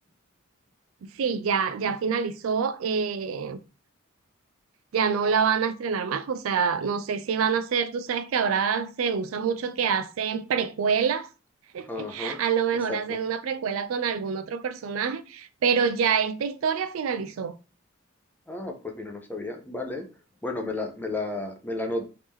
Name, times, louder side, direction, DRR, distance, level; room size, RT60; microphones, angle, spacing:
voice 1, 1.2-3.6 4.9-11.3 11.7-17.5, right 6 dB, 80° right, 0.4 m, -26 dB
voice 2, 11.9-12.4 12.9-13.2 18.5-20.1 20.4-22.1, left 2 dB, 10° left, 0.5 m, -32 dB
3.1 x 2.8 x 3.5 m
head